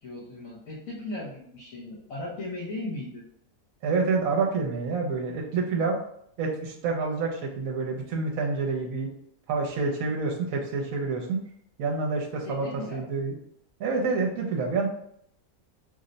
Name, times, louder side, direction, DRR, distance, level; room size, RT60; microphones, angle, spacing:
voice 1, 0.0-3.3 12.4-13.1, left 2 dB, 70° left, -6 dB, 1.1 m, -37 dB
voice 2, 3.8-6.0 6.4-9.1 9.5-11.4 11.8-12.7 12.9-13.3 13.8-14.9, right 4 dB, 70° right, 0 dB, 1.0 m, -28 dB
2.7 x 2.1 x 3.8 m, 0.69 s
omnidirectional pair, 1.6 m